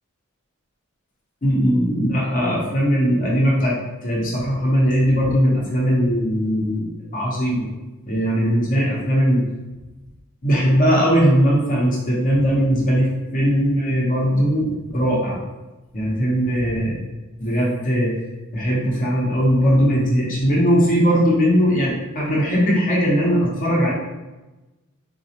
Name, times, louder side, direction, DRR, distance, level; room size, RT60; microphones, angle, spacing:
voice 1, 1.4-3.8 4.0-7.7 8.0-9.5 10.4-14.7 14.9-15.4 15.9-17.0 17.4-18.2 18.5-23.9, equal, 40° left, -4 dB, 0.8 m, -19 dB
4.0 x 2.4 x 2.8 m, 1.1 s
head